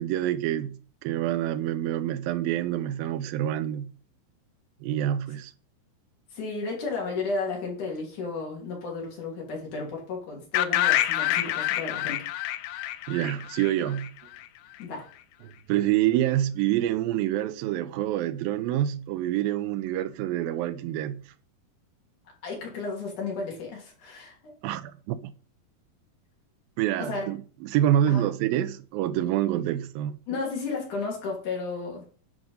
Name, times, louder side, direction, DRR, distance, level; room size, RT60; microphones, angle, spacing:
voice 1, 0.0-3.9 4.8-5.5 13.1-14.1 15.4-21.2 24.6-25.3 26.8-30.1, right 12 dB, 85° right, 2.4 m, -27 dB
voice 2, 6.3-12.3 14.8-15.1 22.4-24.4 27.0-27.3 28.1-28.3 30.3-32.1, left 4 dB, 60° left, 4.2 m, -33 dB
sound 1, 10.5-14.4, left 14 dB, 90° left, 2.5 m, -27 dB
11.0 x 5.1 x 5.4 m
omnidirectional pair, 4.2 m